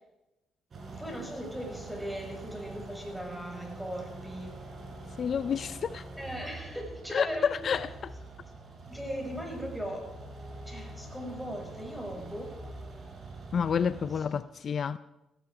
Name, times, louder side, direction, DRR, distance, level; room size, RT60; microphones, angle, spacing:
sound 1, 0.7-14.2, right 3 dB, 45° right, 5.2 m, -44 dB
voice 1, 0.9-4.5 6.2-8.2 8.9-10.1 10.7-12.5 14.1-14.5, equal, ahead, 6.2 m, -39 dB
voice 2, 5.2-6.1 7.1-8.1 13.5-15.0, left 7 dB, 50° left, 0.5 m, -29 dB
17.0 x 17.0 x 4.9 m
cardioid pair, 90°, 0 cm